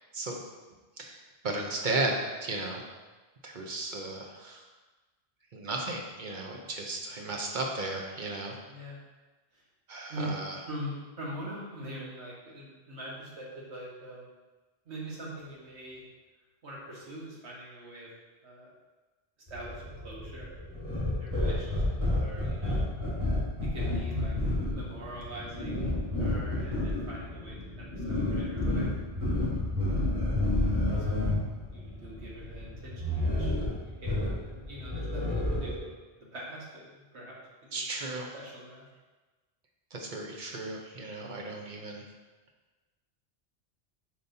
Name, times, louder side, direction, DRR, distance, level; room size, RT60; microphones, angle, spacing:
voice 1, 1.0-2.8 3.4-4.6 5.5-8.5 9.9-10.6 37.7-38.3 39.9-42.0, right 2 dB, 50° right, 1 dB, 1.0 m, -35 dB
voice 2, 10.1-14.3 14.9-16.0 16.6-18.1 18.4-18.7 19.5-20.5 21.0-22.9 23.7-24.4 24.7-25.9 26.2-28.9 29.9-30.1 31.0-31.3 31.7-33.6 33.8-36.0 36.3-37.4 37.6-37.8 38.1-38.8, right 1 dB, 90° right, -4 dB, 1.8 m, -43 dB
sound 1, 19.5-35.8, left 1 dB, 30° right, 2.4 m, -31 dB
7.3 x 5.4 x 2.8 m, 1.2 s
omnidirectional pair, 1.1 m